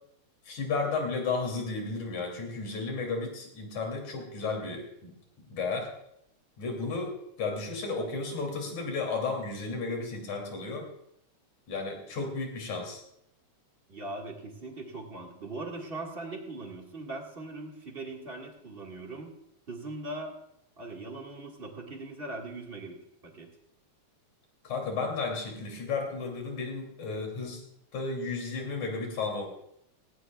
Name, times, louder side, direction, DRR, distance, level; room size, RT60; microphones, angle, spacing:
voice 1, 0.5-5.1 5.5-5.9 6.6-10.9 11.7-13.0 24.6-27.6 27.9-29.5, left 4 dB, 75° left, 1 dB, 4.2 m, -33 dB
voice 2, 13.9-19.3 19.7-20.3 20.8-23.0 23.2-23.5, right 2 dB, 25° right, 0 dB, 1.5 m, -40 dB
18.5 x 17.5 x 2.4 m, 0.78 s
omnidirectional pair, 3.4 m